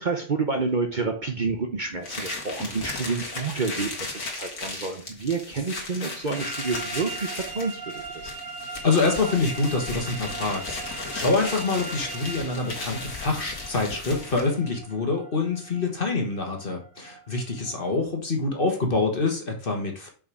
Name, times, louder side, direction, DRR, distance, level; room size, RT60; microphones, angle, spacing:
voice 1, 0.0-8.3, right 4 dB, 40° right, 4 dB, 1.0 m, -29 dB
sound 1, 2.0-14.6, left 3 dB, 90° left, 2.1 m, -36 dB
sound 2, 6.3-17.9, right 4 dB, 70° right, 2.4 m, -40 dB
voice 2, 8.8-20.1, left 3 dB, 45° left, 2 dB, 1.6 m, -26 dB
5.6 x 5.3 x 4.8 m, 0.39 s
omnidirectional pair, 1.4 m